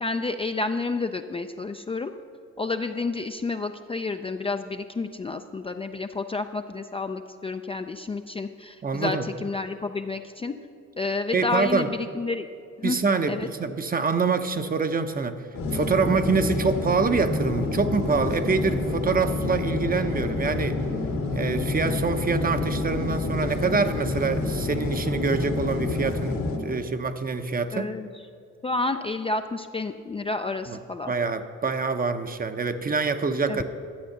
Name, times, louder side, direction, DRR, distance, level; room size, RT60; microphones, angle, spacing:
voice 1, 0.0-2.1 2.6-10.5 11.0-12.5 12.8-13.0 13.3-13.5 27.7-28.1 28.6-31.1 33.5-33.6, left 3 dB, 20° left, 6 dB, 0.4 m, -30 dB
voice 2, 8.8-9.3 11.3-11.9 12.8-15.4 15.7-20.8 21.3-27.9 30.7-33.6, right 4 dB, 30° right, 9 dB, 0.7 m, -25 dB
sound 1, 15.5-26.6, left 3 dB, 75° left, 2.0 m, -28 dB
11.5 x 7.7 x 6.6 m, 2.4 s
cardioid pair, 90°, 30 cm